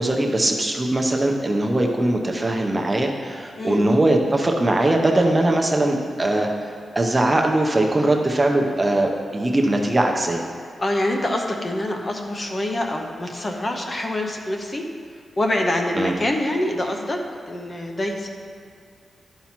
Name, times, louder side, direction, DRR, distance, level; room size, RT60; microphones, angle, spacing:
voice 1, 0.0-10.4 16.0-16.1, right 1 dB, 15° right, 2 dB, 0.7 m, -21 dB
voice 2, 3.6-3.9 10.8-14.8 15.4-17.2 17.5-18.3, left 1 dB, 25° left, 2 dB, 0.7 m, -25 dB
11.5 x 5.7 x 4.4 m, 2.3 s
wide cardioid pair, 180°, 0 cm